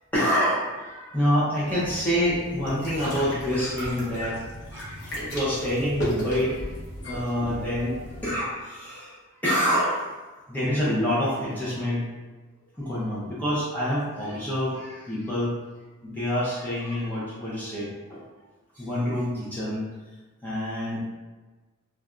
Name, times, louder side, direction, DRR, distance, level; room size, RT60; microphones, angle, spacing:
voice 1, 0.1-6.7 7.1-9.2 9.4-10.1 10.5-12.1 12.7-15.5 16.0-18.2 18.7-19.9 20.4-21.0, equal, 10° left, -9 dB, 0.6 m, -27 dB
sound 1, 1.7-8.4, equal, 55° left, 0.8 m, -35 dB
3.1 x 2.3 x 2.4 m, 1.3 s
head